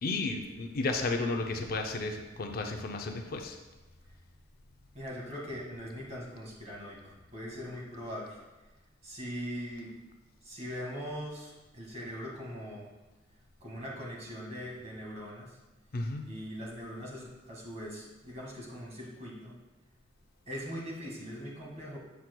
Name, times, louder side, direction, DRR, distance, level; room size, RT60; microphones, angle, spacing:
voice 1, 0.0-3.6 15.9-16.2, left 3 dB, 50° left, 4 dB, 0.5 m, -33 dB
voice 2, 4.9-8.4 9.0-10.0 10.4-12.9 13.6-15.6 16.2-19.5 20.5-22.0, equal, 35° right, -4 dB, 1.8 m, -41 dB
8.0 x 5.9 x 2.2 m, 1.1 s
head